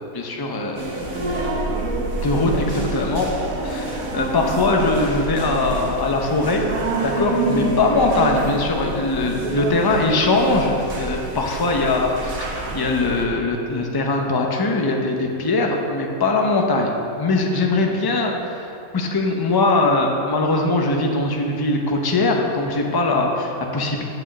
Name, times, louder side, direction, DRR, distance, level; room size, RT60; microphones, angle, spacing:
voice 1, 0.1-1.4 2.2-3.3 3.6-6.7 7.0-24.0, left 2 dB, 20° left, 1 dB, 0.6 m, -21 dB
sound 1, 0.7-13.2, right 2 dB, 70° right, 1.6 m, -27 dB
8.5 x 5.3 x 7.4 m, 2.6 s
omnidirectional pair, 1.6 m